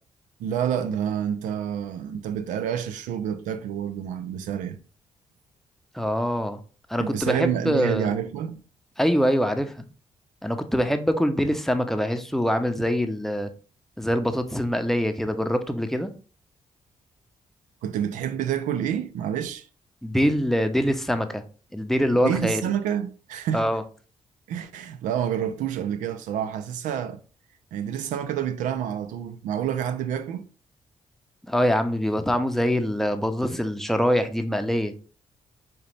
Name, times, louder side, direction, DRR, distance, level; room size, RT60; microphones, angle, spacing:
voice 1, 0.4-4.8 7.0-8.6 17.8-19.7 22.1-23.7 24.5-27.2 27.7-30.5, right 9 dB, 85° right, 0.4 m, -28 dB
voice 2, 5.9-6.6 6.9-8.1 9.0-9.8 10.4-13.5 14.0-16.1 20.0-21.4 21.7-22.7 23.5-23.8 31.5-34.9, equal, 5° left, 0.6 m, -24 dB
5.0 x 2.8 x 3.2 m
supercardioid pair, 60°, 13 cm